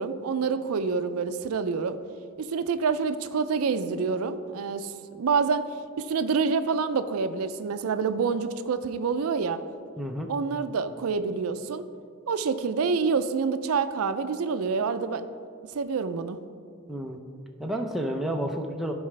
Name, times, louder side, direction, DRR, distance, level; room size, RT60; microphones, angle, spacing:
voice 1, 0.0-2.0 2.4-4.9 5.2-5.6 6.0-9.6 10.3-11.8 12.3-15.2 15.7-16.4, right 5 dB, 80° right, 10 dB, 0.4 m, -27 dB
voice 2, 10.0-10.3 16.9-17.2 17.6-18.9, right 1 dB, ahead, 1 dB, 0.5 m, -30 dB
14.0 x 4.8 x 3.3 m, 2.3 s
head